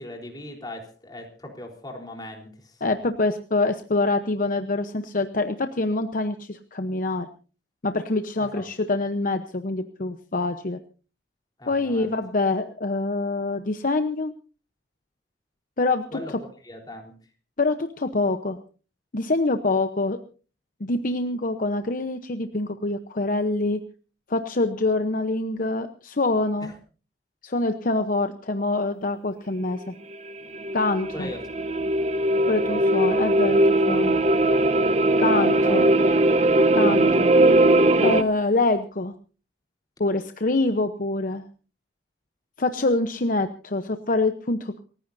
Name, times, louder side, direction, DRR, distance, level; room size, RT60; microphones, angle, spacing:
voice 1, 0.0-2.8 8.4-8.7 11.6-12.1 16.1-16.3 16.6-17.1 26.6-26.7 31.1-31.4 35.3-35.8, left 1 dB, 25° left, 1 dB, 3.9 m, -39 dB
voice 2, 2.8-7.3 7.8-10.8 11.7-14.3 15.8-16.2 17.6-18.6 19.1-20.2 20.8-23.8 24.3-26.7 27.4-29.9 30.7-31.3 32.5-34.2 35.2-35.9 36.7-37.3 38.0-39.1 40.0-41.4 42.6-44.8, left 2 dB, 50° left, 8 dB, 0.9 m, -25 dB
sound 1, 30.1-38.2, right 1 dB, 40° right, 0.9 m, -20 dB
29.0 x 15.0 x 2.7 m, 0.37 s
head